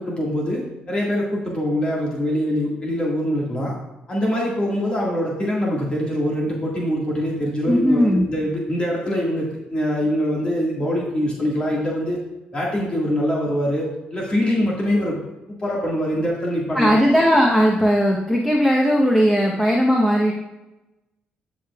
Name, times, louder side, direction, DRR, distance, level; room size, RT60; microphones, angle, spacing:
voice 1, 0.0-3.7 4.1-12.2 12.5-15.2 15.5-17.0, equal, 30° left, -4 dB, 1.8 m, -23 dB
voice 2, 7.7-8.3 16.7-20.3, equal, 5° left, -2 dB, 0.9 m, -17 dB
14.0 x 5.1 x 2.4 m, 1.0 s
cardioid pair, 85°, 4 cm